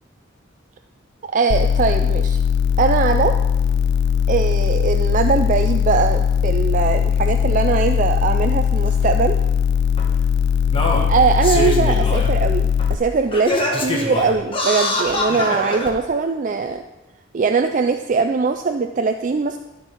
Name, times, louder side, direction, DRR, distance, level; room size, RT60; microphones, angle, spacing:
voice 1, 1.3-2.4 2.8-3.3 4.3-9.4 11.1-13.5 13.8-16.8 17.3-19.6, right 5 dB, 40° right, 6 dB, 0.4 m, -21 dB
sound 1, 1.5-13.0, left 8 dB, 60° left, 0.5 m, -19 dB
Singing, 8.8-8.9 10.0-10.1 10.7-12.3 12.8-12.9 13.3-15.9 16.7-16.8, left 1 dB, 25° left, 1.3 m, -23 dB
12.5 x 4.7 x 5.7 m, 1.0 s
head